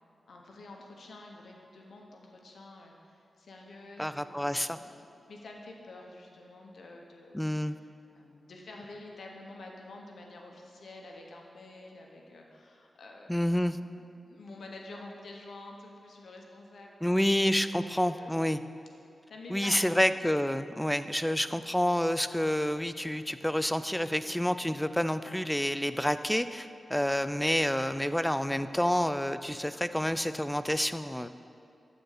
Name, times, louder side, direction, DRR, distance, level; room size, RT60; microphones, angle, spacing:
voice 1, 0.3-13.9 14.2-18.4 19.3-20.0, left 2 dB, 80° left, 0 dB, 1.2 m, -49 dB
voice 2, 4.0-4.8 7.3-7.8 13.3-13.8 17.0-18.6 19.5-31.3, equal, 5° left, 12 dB, 0.4 m, -28 dB
12.5 x 4.3 x 6.6 m, 2.5 s
cardioid pair, 50°, 0 cm